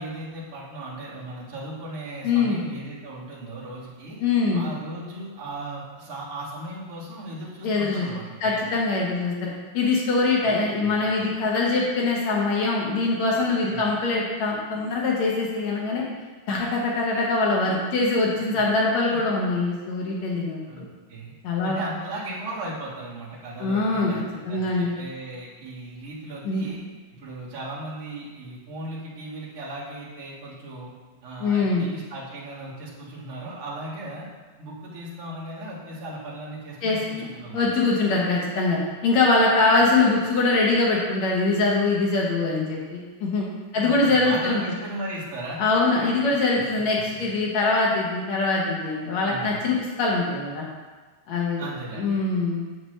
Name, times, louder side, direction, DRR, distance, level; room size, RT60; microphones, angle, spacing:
voice 1, 0.0-4.2 4.5-8.6 10.4-10.5 10.8-11.2 13.7-13.9 18.5-18.6 19.0-19.2 20.7-20.8 21.1-21.3 21.6-24.2 24.5-26.8 27.1-30.9 31.2-34.3 34.6-37.7 40.0-40.2 43.7-45.6 46.3-47.3 49.2-49.7 51.6-52.2, right 1 dB, 90° right, -7 dB, 0.6 m, -37 dB
voice 2, 2.2-2.6 4.2-4.6 7.6-8.1 8.4-16.0 16.5-20.9 21.4-21.8 23.6-24.1 24.5-25.0 26.5-26.7 31.4-31.8 36.8-37.3 37.5-43.5 43.7-44.6 45.6-50.7 51.3-51.6 51.9-52.6, left 3 dB, 65° left, -3 dB, 1.9 m, -23 dB
8.6 x 7.8 x 3.3 m, 1.3 s
omnidirectional pair, 4.5 m